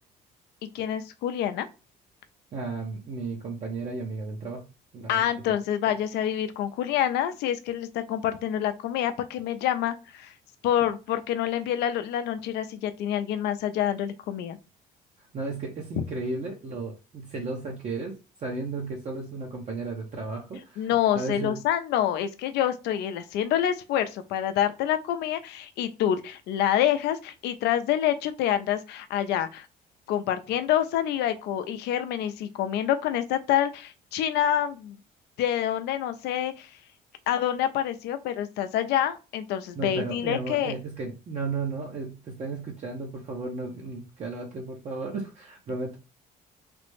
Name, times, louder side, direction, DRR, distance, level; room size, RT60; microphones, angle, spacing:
voice 1, 0.6-1.7 5.1-10.3 10.6-14.6 20.8-29.7 30.1-35.0 35.4-36.7 37.3-40.7, left 10 dB, 80° left, 0.5 m, -27 dB
voice 2, 2.5-4.6 4.9-5.3 5.9-6.0 15.3-18.1 18.4-21.6 39.8-46.0, right 3 dB, 45° right, 0.7 m, -34 dB
3.3 x 2.0 x 3.1 m
cardioid pair, 110°, 17 cm